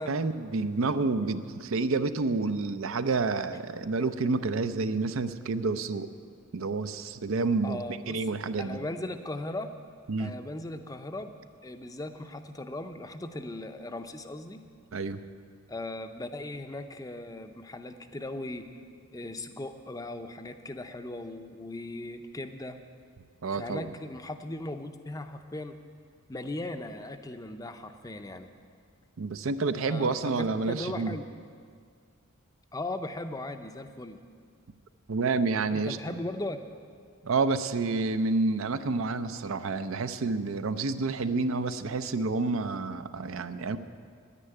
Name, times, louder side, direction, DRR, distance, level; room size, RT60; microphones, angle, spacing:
voice 1, 0.0-6.1 6.5-8.8 10.1-10.4 14.9-15.2 23.4-23.9 29.2-31.1 35.1-36.0 37.2-43.8, right 3 dB, 70° right, 11 dB, 0.6 m, -29 dB
voice 2, 7.6-8.3 8.6-9.7 10.2-14.6 15.7-18.7 19.1-22.8 23.5-25.8 26.3-28.5 29.9-31.2 32.7-34.2 35.7-36.6, left 2 dB, 15° left, 8 dB, 0.5 m, -38 dB
9.9 x 9.8 x 9.7 m, 2.1 s
head